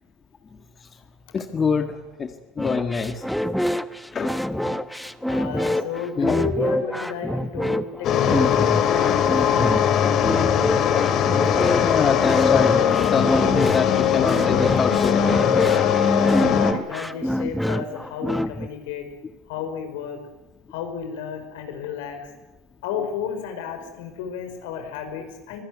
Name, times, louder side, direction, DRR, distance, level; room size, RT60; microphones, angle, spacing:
voice 1, 1.3-2.3 2.6-3.2 4.1-4.3 6.2-6.4 11.8-12.7 13.1-15.4, left 5 dB, 30° left, 6 dB, 1.8 m, -25 dB
sound 1, 2.6-18.7, equal, ahead, 1.0 m, -26 dB
voice 2, 5.3-9.9 16.0-16.4 16.9-19.1 19.5-20.2 20.7-22.3 22.8-25.6, left 6 dB, 80° left, 6 dB, 5.2 m, -32 dB
sound 2, 8.0-16.7, left 8 dB, 50° left, 2.3 m, -20 dB
24.5 x 17.5 x 9.5 m, 1.1 s
supercardioid pair, 100°, 0 cm